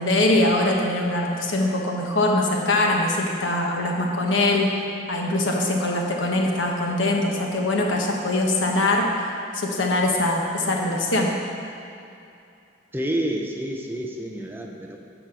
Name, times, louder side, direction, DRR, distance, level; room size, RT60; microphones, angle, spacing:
voice 1, 0.0-4.7 5.1-9.1 9.5-11.3, left 2 dB, 85° left, 0 dB, 1.2 m, -22 dB
voice 2, 12.9-15.0, right 1 dB, 10° right, 1 dB, 0.6 m, -29 dB
10.0 x 4.4 x 6.8 m, 2.6 s
head